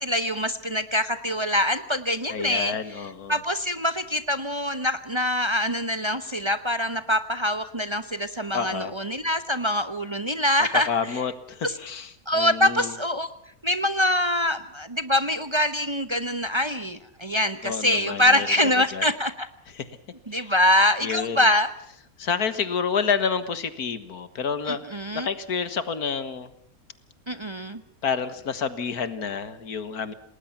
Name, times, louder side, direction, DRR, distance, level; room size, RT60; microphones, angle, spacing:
voice 1, 0.0-2.7 3.3-10.9 11.6-11.7 12.3-13.3 13.6-19.5 20.3-21.7 24.7-25.3 27.3-27.8, left 1 dB, 25° right, 11 dB, 0.9 m, -24 dB
voice 2, 2.3-3.4 8.5-8.9 10.7-12.9 17.6-18.5 18.9-19.1 19.7-19.9 20.3-20.5 21.0-21.5 22.2-24.8 25.1-26.5 28.0-30.1, left 6 dB, 85° left, 12 dB, 2.0 m, -29 dB
28.5 x 19.5 x 5.8 m, 0.68 s
omnidirectional pair, 1.6 m